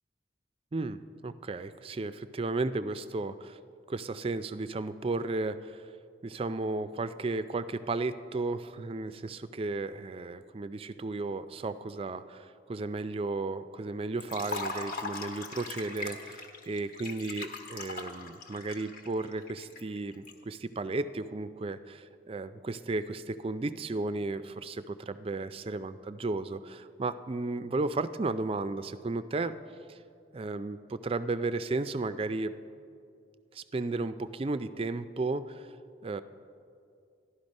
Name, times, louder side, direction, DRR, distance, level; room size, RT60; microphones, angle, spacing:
voice 1, 0.7-3.6 3.9-5.9 6.2-29.5 29.9-30.0 30.3-32.5 33.5-35.7 36.0-36.2, right 3 dB, 30° right, 12 dB, 0.4 m, -34 dB
Liquid, 14.2-20.3, left 3 dB, 50° left, 1.2 m, -40 dB
13.5 x 11.5 x 5.3 m, 2.4 s
head